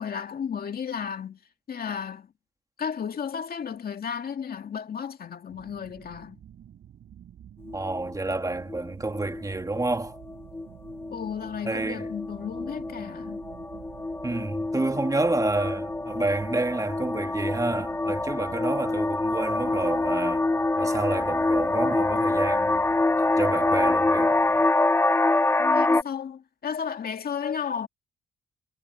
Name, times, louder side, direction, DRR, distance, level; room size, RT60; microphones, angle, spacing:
voice 1, 0.0-1.4 1.7-2.3 2.8-6.4 11.1-13.4 25.6-27.9, left 7 dB, 50° left, 2.2 m, -33 dB
sound 1, 5.5-24.7, right 10 dB, 65° right, 7.9 m, -49 dB
sound 2, 7.7-8.1 8.7-8.9 9.1-9.4 9.7-26.0, left 2 dB, 10° left, 0.9 m, -26 dB
voice 2, 7.7-10.2 11.6-12.0 14.2-20.5 20.8-22.8 23.2-24.4, right 2 dB, 15° right, 2.7 m, -29 dB
cardioid pair, 90°, 20 cm